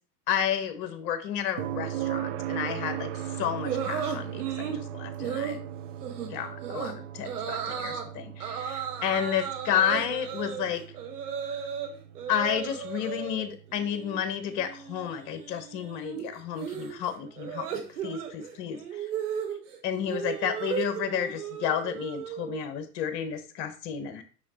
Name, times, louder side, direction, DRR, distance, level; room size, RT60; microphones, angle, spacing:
voice 1, 0.3-5.6 6.3-10.8 12.3-19.1 19.8-24.2, left 9 dB, 45° left, 9 dB, 1.2 m, -31 dB
sound 1, 1.6-15.4 17.7-17.8, right 11 dB, 45° right, 0.5 m, -38 dB
sound 2, 3.6-4.8 5.2-5.6 6.0-6.3 6.6-6.9 7.2-8.0 8.4-11.9 12.1-13.4 13.8-14.2 14.4-22.6, right 8 dB, 65° right, 1.6 m, -35 dB
6.3 x 5.7 x 3.0 m, 0.37 s
figure-of-eight pair, 95°, 48 cm